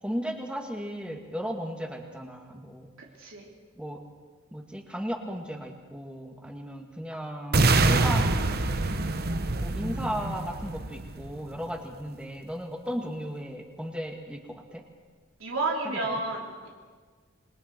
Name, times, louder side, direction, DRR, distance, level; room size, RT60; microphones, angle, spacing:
voice 1, 0.0-2.9 3.7-4.0 4.5-8.6 9.5-14.8 16.0-16.2, equal, 5° right, 2 dB, 2.2 m, -35 dB
voice 2, 3.0-3.5 15.4-16.7, right 2 dB, 80° right, -2 dB, 3.1 m, -31 dB
sound 1, 7.5-11.6, right 2 dB, 50° right, 1.0 m, -25 dB
28.0 x 22.0 x 4.6 m, 1.5 s
head